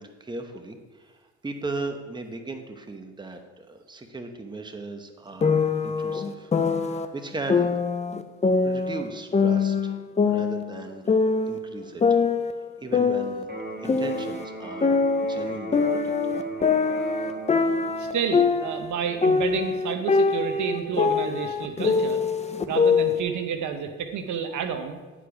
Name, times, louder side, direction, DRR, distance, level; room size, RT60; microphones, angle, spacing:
voice 1, 0.0-7.7 8.6-9.9 10.3-11.0 11.4-12.2 12.8-16.3, right 3 dB, 15° right, 5 dB, 0.9 m, -37 dB
sound 1, 5.4-7.1 7.5-9.1 9.3-11.6 12.0-14.4 14.8-18.9 19.2-23.2, left 5 dB, 20° left, 0.6 m, -23 dB
Electric guitar, 13.4-21.4, right 2 dB, 35° right, 3.1 m, -39 dB
voice 2, 18.0-22.2 22.7-25.0, right 6 dB, 75° right, 7 dB, 0.9 m, -30 dB
9.9 x 5.0 x 5.0 m, 1.3 s
cardioid pair, 90°, 30 cm